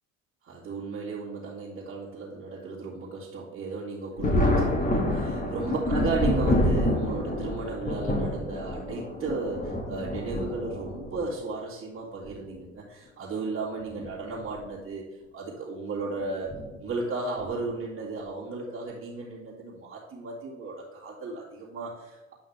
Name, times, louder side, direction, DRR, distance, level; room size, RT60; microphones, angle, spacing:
voice 1, 0.4-15.0 15.3-22.3, right 3 dB, 35° right, -8 dB, 2.2 m, -35 dB
Thunder, 4.2-11.2 12.2-12.3 13.8-14.1 14.4-14.5 16.5-16.7 17.4-17.7, left 1 dB, 20° left, 1.6 m, -27 dB
8.7 x 5.5 x 3.4 m, 1.2 s
hypercardioid pair, 60°, 37 cm